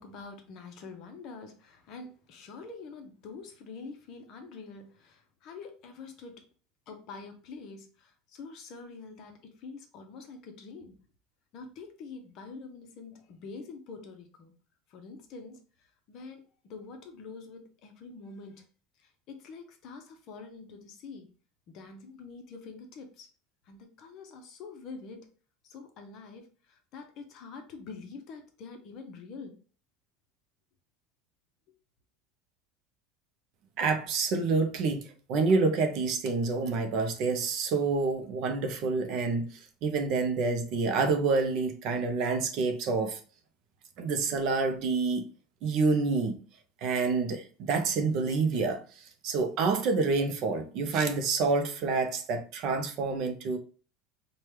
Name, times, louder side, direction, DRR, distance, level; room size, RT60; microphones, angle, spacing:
voice 1, 0.0-6.5 6.9-11.0 11.5-14.5 14.9-15.6 16.1-18.6 19.0-21.3 21.7-23.3 23.6-25.3 25.6-29.6, left 4 dB, 40° left, 0.7 m, -46 dB
voice 2, 33.8-43.2 44.0-45.3 45.6-46.4 46.8-48.8 49.2-53.6, right 4 dB, 45° right, 0.5 m, -28 dB
4.6 x 2.3 x 3.1 m
cardioid pair, 165°, 0 cm